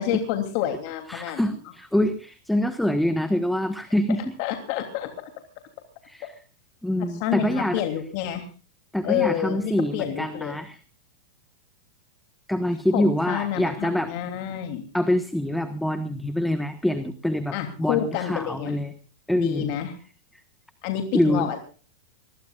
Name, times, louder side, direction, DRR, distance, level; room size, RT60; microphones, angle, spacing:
voice 1, 0.0-1.6 4.4-5.3 7.0-8.5 9.0-10.6 12.9-14.8 17.5-18.8 19.3-19.9 20.8-21.6, left 10 dB, 50° left, 5 dB, 3.1 m, -28 dB
voice 2, 1.1-4.3 6.0-6.3 6.8-7.8 8.9-10.8 12.5-14.1 14.9-18.9 19.3-19.8 21.1-21.4, left 1 dB, ahead, 8 dB, 1.3 m, -25 dB
24.5 x 21.0 x 2.5 m, 0.38 s
supercardioid pair, 150°, 2 cm